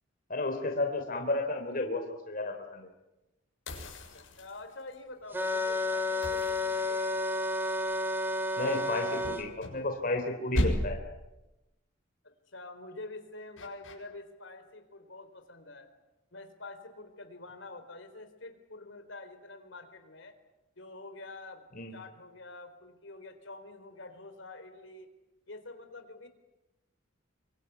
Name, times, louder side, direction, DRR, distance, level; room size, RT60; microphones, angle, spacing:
voice 1, 0.3-2.9 8.6-11.0 21.8-21.9, left 2 dB, 45° left, 4 dB, 3.3 m, -32 dB
sound 1, 3.7-4.9 6.2-7.4 9.2-10.2 10.5-11.2 13.6-13.9, left 1 dB, 85° left, 7.1 m, -34 dB
voice 2, 3.8-7.2 12.2-15.9 16.3-20.4 20.8-21.6 21.9-25.1 25.5-26.3, left 2 dB, 70° left, 8 dB, 3.9 m, -47 dB
sound 2, 5.3-9.4, left 1 dB, 10° right, 2.8 m, -31 dB
25.5 x 24.5 x 9.4 m, 0.98 s
head